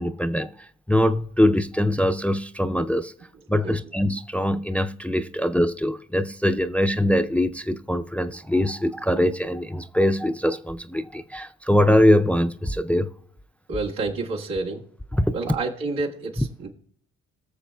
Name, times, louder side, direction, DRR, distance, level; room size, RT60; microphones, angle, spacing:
voice 1, 0.0-3.1 3.5-13.1 15.2-15.3, left 1 dB, 5° left, 0.4 m, -22 dB
voice 2, 13.7-14.8 15.3-16.7, right 3 dB, 90° right, 1.8 m, -29 dB
19.5 x 6.7 x 2.3 m
supercardioid pair, 55°, 33 cm